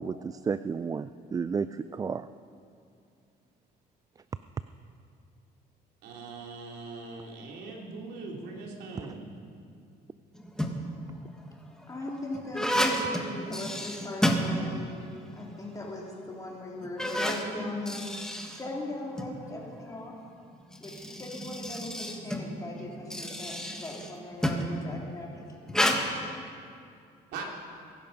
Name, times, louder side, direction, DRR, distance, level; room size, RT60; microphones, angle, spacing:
voice 1, 0.0-2.3 9.0-9.1, right 5 dB, 20° right, 13 dB, 0.3 m, -32 dB
voice 2, 6.0-9.2 27.3-27.4, right 4 dB, 80° right, -1 dB, 3.2 m, -41 dB
sound 1, 10.3-11.0 11.7-15.1 15.4-15.5 16.2-16.3 16.8-19.3 20.5-24.8 25.7-26.0, equal, 5° left, 1.6 m, -31 dB
voice 3, 11.9-15.0 15.4-18.1 18.6-20.1 20.8-25.6, left 2 dB, 20° left, -3 dB, 3.7 m, -39 dB
23.0 x 11.0 x 5.4 m, 2.4 s
cardioid pair, 110°, 17 cm